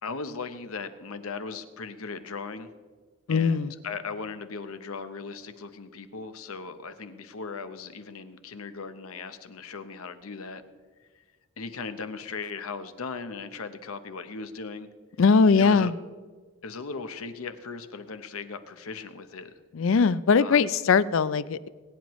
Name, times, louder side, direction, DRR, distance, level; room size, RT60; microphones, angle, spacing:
voice 1, 0.0-2.7 3.3-10.6 11.0-11.2 11.6-14.9 15.5-15.9 16.6-19.5 20.4-20.7, left 4 dB, 80° left, 10 dB, 0.9 m, -38 dB
voice 2, 3.3-3.7 15.2-15.9 19.7-21.7, left 5 dB, 65° left, 17 dB, 0.4 m, -21 dB
21.5 x 9.5 x 3.1 m, 1.5 s
head